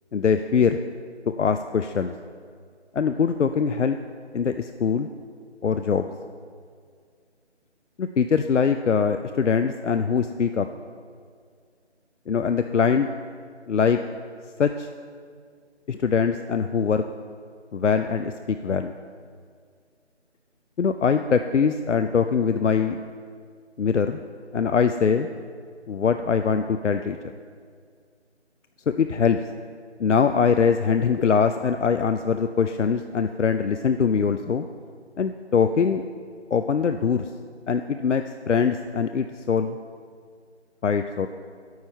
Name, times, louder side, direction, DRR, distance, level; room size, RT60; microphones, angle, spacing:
voice 1, 0.1-0.8 1.3-2.1 2.9-4.0 4.3-5.1 5.6-6.1 8.0-10.7 12.3-13.1 13.7-14.0 14.6-14.9 15.9-17.0 17.7-18.9 20.8-23.0 23.8-24.2 24.5-25.3 25.9-27.2 28.9-29.4 30.0-34.7 35.2-36.0 36.5-37.2 37.7-39.8 40.8-41.3, left 6 dB, 85° left, 8 dB, 0.5 m, -22 dB
9.6 x 9.4 x 4.4 m, 2.1 s
figure-of-eight pair, 160°, 35 cm